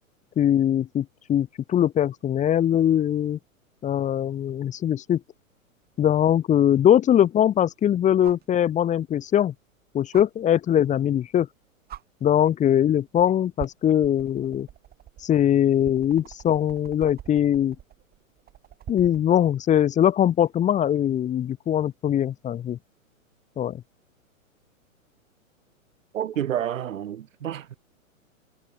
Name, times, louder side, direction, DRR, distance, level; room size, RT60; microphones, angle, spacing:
voice 1, 0.4-3.4 3.8-5.2 6.0-9.5 9.9-11.5 12.2-14.7 15.2-17.8 18.9-22.8 23.6-23.8, left 10 dB, 15° left, 1.8 m, -21 dB
sound 1, 6.0-6.1 8.2-8.5 10.1-10.3 11.4-11.5 11.9-12.0 13.0-13.2 13.6-19.3 20.9-21.0, right 11 dB, 20° right, 6.7 m, -43 dB
voice 2, 26.1-27.8, right 10 dB, 65° right, 4.2 m, -29 dB
hypercardioid pair, 130°, 42 cm